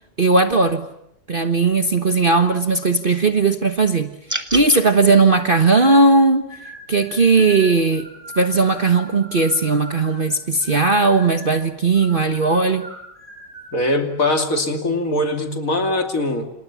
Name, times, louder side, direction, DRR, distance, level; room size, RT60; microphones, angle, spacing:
voice 1, 0.2-0.9 1.3-4.1 4.5-6.5 6.9-8.1 8.4-12.9, right 3 dB, 35° right, 1.3 m, -17 dB
sound 1, 4.3-4.8, right 1 dB, 10° right, 1.9 m, -26 dB
sound 2, 5.6-6.2 6.5-10.3 10.6-11.6 11.9-13.7, right 1 dB, 25° left, 7.2 m, -40 dB
voice 2, 13.7-16.5, left 1 dB, 50° left, 3.1 m, -21 dB
29.0 x 28.0 x 7.1 m
omnidirectional pair, 1.9 m